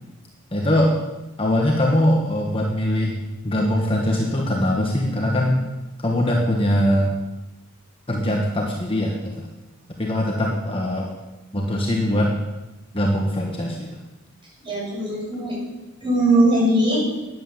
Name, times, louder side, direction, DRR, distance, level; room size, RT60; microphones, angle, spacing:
voice 1, 0.5-0.9 1.4-5.7 6.0-7.2 8.1-9.5 10.0-11.1 11.5-12.3 12.9-13.9, left 1 dB, 25° left, -1 dB, 1.5 m, -21 dB
voice 2, 14.6-15.6 16.0-17.1, right 1 dB, 20° right, -5 dB, 6.5 m, -20 dB
12.0 x 10.0 x 7.4 m, 1.1 s
head